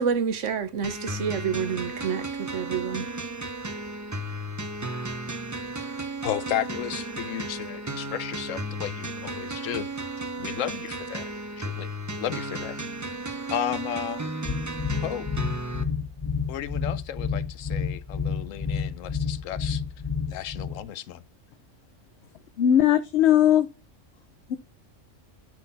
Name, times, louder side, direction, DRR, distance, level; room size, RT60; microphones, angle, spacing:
voice 1, 0.0-3.1, right 7 dB, 75° right, 1.3 m, -28 dB
sound 1, 0.8-15.8, right 2 dB, 20° right, 0.6 m, -34 dB
voice 2, 6.2-9.9 10.4-11.9 12.2-12.8 13.5-14.3 15.0-15.3 16.5-19.8 20.3-21.2, left 11 dB, 90° left, 1.0 m, -33 dB
sound 2, 14.5-20.8, left 5 dB, 30° left, 0.4 m, -29 dB
voice 3, 22.6-23.7 24.5-24.6, left 10 dB, 65° left, 0.9 m, -19 dB
12.0 x 4.0 x 4.1 m
omnidirectional pair, 1.3 m